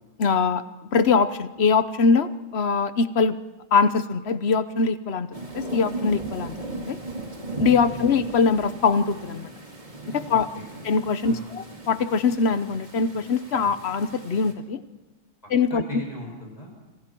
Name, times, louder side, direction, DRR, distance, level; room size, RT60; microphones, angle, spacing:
voice 1, 0.2-0.6 0.9-3.4 3.7-5.3 5.5-7.0 7.6-9.5 10.1-10.5 10.8-14.8 15.5-15.8, left 5 dB, 55° left, 13 dB, 1.2 m, -22 dB
sound 1, 5.3-14.5, right 2 dB, 35° right, 2.8 m, -37 dB
voice 2, 10.2-10.8 11.2-11.5 15.4-16.7, equal, 30° left, -1 dB, 7.0 m, -39 dB
27.0 x 25.5 x 4.6 m, 1.1 s
omnidirectional pair, 1.3 m